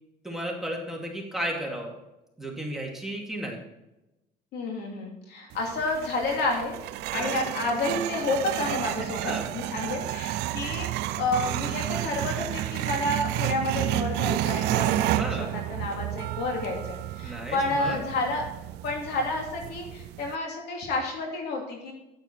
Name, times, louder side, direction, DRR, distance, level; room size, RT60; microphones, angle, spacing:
voice 1, 0.2-1.9 2.4-3.6 7.1-7.5 9.2-9.5 15.1-15.5 17.2-18.0, right 1 dB, ahead, -2 dB, 2.4 m, -33 dB
voice 2, 4.5-6.7 7.1-18.4 18.8-21.9, left 2 dB, 75° left, 1 dB, 2.9 m, -30 dB
sound 1, 5.5-20.3, right 15 dB, 85° right, 0.4 m, -31 dB
9.4 x 9.1 x 4.1 m, 0.95 s
cardioid pair, 110°, 17 cm